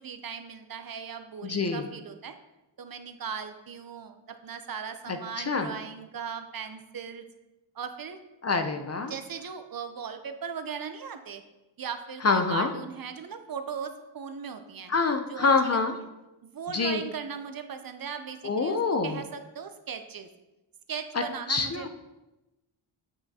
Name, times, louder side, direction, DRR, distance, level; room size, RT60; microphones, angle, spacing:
voice 1, 0.0-2.3 2.8-4.2 4.4-7.2 7.8-8.2 9.1-11.4 11.8-14.9 15.3-15.8 16.4-18.8 19.0-20.3 20.9-21.9, right 6 dB, 50° right, 7 dB, 0.6 m, -38 dB
voice 2, 1.4-1.8 5.1-5.7 8.4-9.1 12.2-12.7 14.9-15.9 16.7-17.0 18.4-19.2 21.1-21.2 21.5-21.9, left 4 dB, 35° left, 7 dB, 0.5 m, -26 dB
8.1 x 5.6 x 2.8 m, 1.0 s
wide cardioid pair, 100°, 47 cm